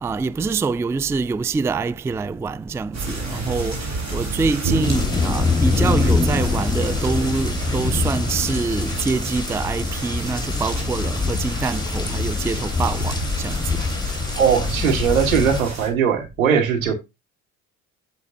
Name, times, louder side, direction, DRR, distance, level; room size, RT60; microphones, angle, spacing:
voice 1, 0.0-3.8 4.1-13.8, right 4 dB, 5° right, 0.3 m, -25 dB
sound 1, 2.9-15.9, right 2 dB, 40° right, 4.8 m, -30 dB
sound 2, 4.8-15.6, left 4 dB, 10° left, 1.5 m, -24 dB
voice 2, 14.4-16.9, right 7 dB, 85° right, 1.8 m, -19 dB
8.4 x 7.6 x 2.6 m
hypercardioid pair, 55°, 40 cm